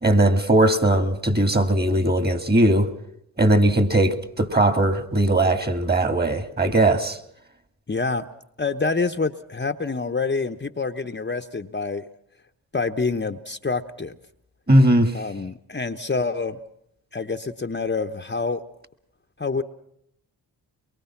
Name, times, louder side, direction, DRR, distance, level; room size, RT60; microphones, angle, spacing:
voice 1, 0.0-2.9 3.4-7.2 14.7-15.1, right 1 dB, 25° right, 2.2 m, -19 dB
voice 2, 7.9-8.2 8.6-12.0 12.7-14.1 15.1-16.6 17.1-18.6 19.4-19.6, left 4 dB, 25° left, 1.1 m, -27 dB
24.0 x 23.0 x 5.9 m
cardioid pair, 55°, 42 cm